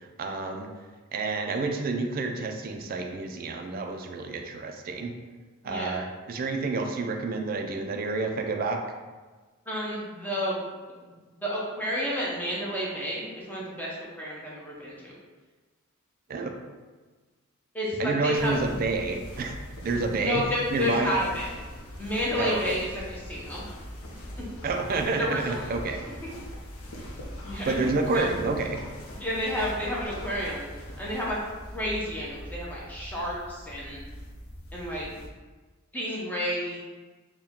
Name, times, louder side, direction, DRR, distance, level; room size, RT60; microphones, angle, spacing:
voice 1, 0.2-0.7 1.1-5.1 5.6-8.8 16.3-16.5 18.0-21.1 22.4-22.6 24.6-26.0 27.6-28.8, right 3 dB, 40° right, 4 dB, 0.3 m, -29 dB
voice 2, 5.6-6.0 9.7-10.6 11.0-11.1 11.4-15.1 17.7-18.5 20.2-21.5 22.0-23.6 25.2-25.7 27.4-28.2 29.1-30.7 31.0-31.4 31.7-34.0 34.7-35.1 35.9-36.8, equal, 10° left, -6 dB, 0.7 m, -31 dB
sound 1, 18.3-35.3, equal, 70° left, 0.7 m, -41 dB
4.3 x 2.2 x 3.6 m, 1.3 s
head